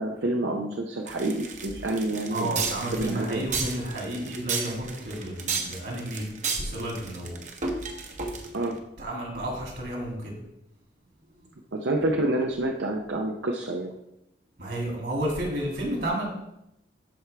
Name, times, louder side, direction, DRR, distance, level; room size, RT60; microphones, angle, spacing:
voice 1, 0.0-3.4 8.5-8.8 11.7-13.9, right 1 dB, 85° right, 2 dB, 0.7 m, -28 dB
sound 1, 1.1-8.7, right 5 dB, 40° right, 0.9 m, -33 dB
voice 2, 2.3-6.3 6.6-7.3 9.0-10.4 11.3-11.5 14.6-16.2, right 1 dB, 65° right, -2 dB, 2.6 m, -31 dB
12.5 x 4.6 x 3.4 m, 0.84 s
head